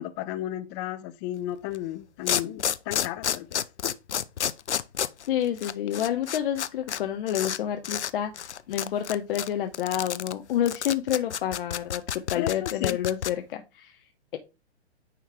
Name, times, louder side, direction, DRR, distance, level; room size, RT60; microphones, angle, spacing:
voice 1, 0.0-3.6 12.3-13.0, left 13 dB, 25° left, 0.5 m, -34 dB
sound 1, 1.7-1.8 2.3-7.0 7.3-7.6 7.8-8.1 8.4-13.3, left 9 dB, 90° left, 0.5 m, -29 dB
voice 2, 5.3-12.0 12.3-14.0, left 10 dB, 55° left, 0.8 m, -29 dB
9.3 x 3.1 x 3.4 m
hypercardioid pair, 120°, 34 cm